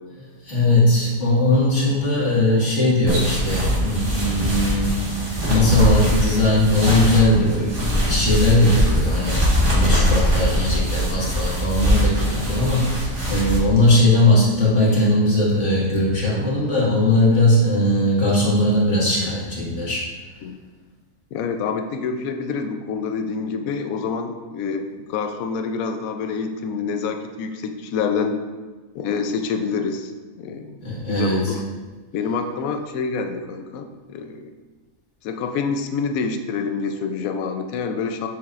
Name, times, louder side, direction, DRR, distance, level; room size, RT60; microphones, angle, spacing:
voice 1, 0.5-9.4 9.7-20.0 30.8-31.5, left 1 dB, 55° left, -6 dB, 2.0 m, -19 dB
sound 1, 3.1-13.6, equal, 40° right, 1.8 m, -22 dB
voice 2, 21.3-28.4 28.9-30.1 30.4-30.8 31.1-31.6 32.1-34.5 35.2-38.3, left 5 dB, 80° left, 6 dB, 1.0 m, -27 dB
7.2 x 6.3 x 2.5 m, 1.4 s
omnidirectional pair, 1.5 m